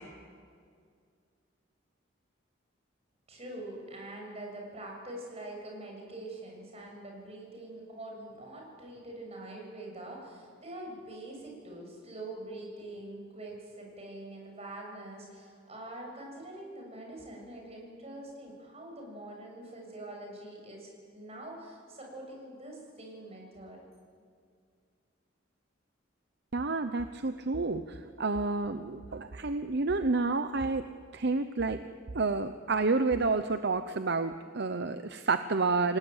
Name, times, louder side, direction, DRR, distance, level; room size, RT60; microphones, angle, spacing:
voice 1, 3.3-23.8, right 1 dB, 35° right, 0 dB, 7.0 m, -44 dB
voice 2, 26.5-30.8 31.1-31.8 32.1-36.0, right 3 dB, 55° right, 10 dB, 0.9 m, -29 dB
28.5 x 18.5 x 9.0 m, 2.2 s
head